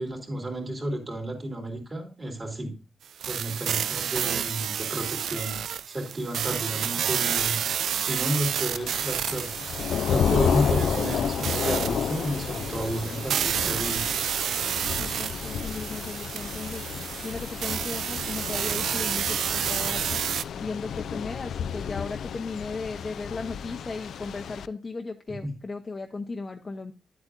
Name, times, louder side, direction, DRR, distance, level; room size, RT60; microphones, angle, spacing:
voice 1, 0.0-2.7 3.3-7.6 8.1-9.5 10.1-14.1 25.4-25.5, right 1 dB, 30° right, 1 dB, 3.2 m, -32 dB
sound 1, 3.2-20.4, right 9 dB, 90° right, 0.3 m, -30 dB
Thunder / Rain, 8.7-24.7, left 8 dB, 90° left, 0.3 m, -31 dB
voice 2, 15.0-16.8 17.2-20.0 20.5-26.9, left 4 dB, 30° left, 4 dB, 0.7 m, -36 dB
11.0 x 8.1 x 2.5 m, 0.33 s
wide cardioid pair, 115°, 0 cm